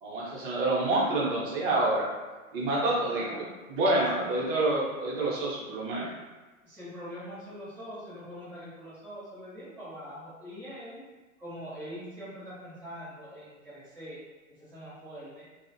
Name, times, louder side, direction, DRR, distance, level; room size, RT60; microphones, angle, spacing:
voice 1, 0.0-2.1 2.5-3.3 3.7-6.1, right 2 dB, 35° right, -4 dB, 0.7 m, -27 dB
voice 2, 3.1-3.6 4.0-4.4 6.6-11.0 11.4-14.2 14.6-15.5, equal, 5° right, -16 dB, 0.4 m, -43 dB
2.5 x 2.1 x 2.5 m, 1.3 s
hypercardioid pair, 120°, 44 cm